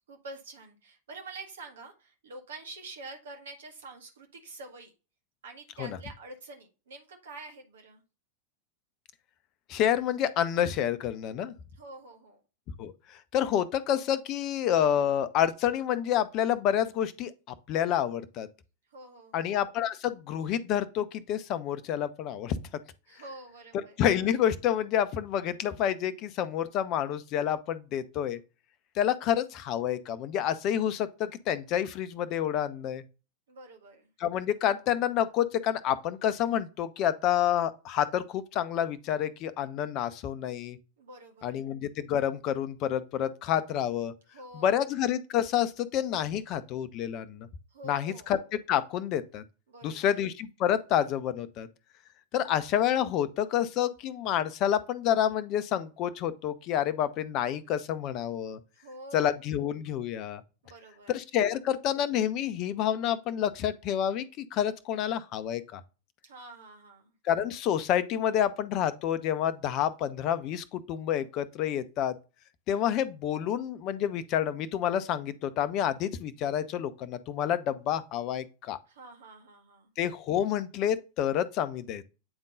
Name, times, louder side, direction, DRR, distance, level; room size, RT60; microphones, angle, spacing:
voice 1, 0.1-4.9 5.4-8.0 11.7-12.4 18.9-19.6 23.1-24.0 33.5-34.1 41.0-41.7 44.3-44.8 47.7-48.3 49.7-50.2 58.7-59.4 60.6-61.1 66.2-67.1 78.9-79.9, right 2 dB, 65° right, 1.8 m, -47 dB
voice 2, 9.7-11.5 12.8-12.9 13.3-18.5 19.3-22.6 24.0-28.4 29.0-33.0 34.2-40.8 41.4-44.1 44.5-47.5 47.8-49.4 49.8-51.7 52.3-58.6 59.1-60.4 61.1-65.8 67.2-72.1 72.7-78.8 80.0-82.0, left 10 dB, 40° left, 0.7 m, -28 dB
8.8 x 3.7 x 3.8 m
figure-of-eight pair, 90°, 0 cm